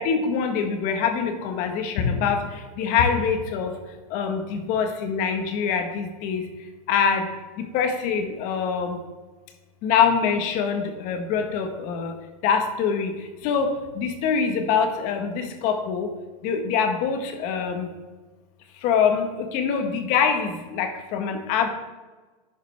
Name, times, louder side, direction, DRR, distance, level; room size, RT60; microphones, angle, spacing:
voice 1, 0.0-3.7 4.1-6.5 6.9-7.3 7.6-9.0 9.8-12.1 12.4-13.1 13.4-16.1 16.4-17.9 18.8-21.7, left 6 dB, 45° left, 6 dB, 1.3 m, -24 dB
11.0 x 6.4 x 3.4 m, 1.3 s
supercardioid pair, 140°, 19 cm